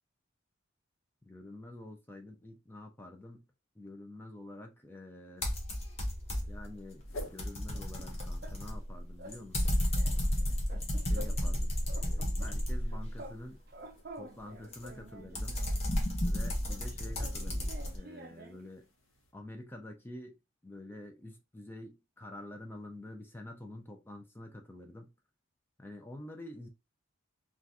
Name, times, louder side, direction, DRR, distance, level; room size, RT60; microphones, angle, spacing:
voice 1, 1.2-3.5 3.8-5.5 6.5-9.8 11.0-13.6 14.1-15.6 16.2-18.9 19.3-20.4 20.6-25.1 25.8-26.7, left 1 dB, 10° left, 0.5 m, -48 dB
sound 1, 5.4-6.7 7.0-13.2 14.7-18.0, equal, 30° left, 0.8 m, -32 dB
sound 2, 7.0-7.5 11.5-15.0 16.0-19.3, left 1 dB, 75° left, 0.8 m, -51 dB
sound 3, 7.5-8.9 9.2-9.4 9.7-11.6 11.9-13.4 13.7-15.9 16.7-18.7, right 1 dB, 45° right, 0.5 m, -50 dB
3.7 x 2.4 x 2.6 m
head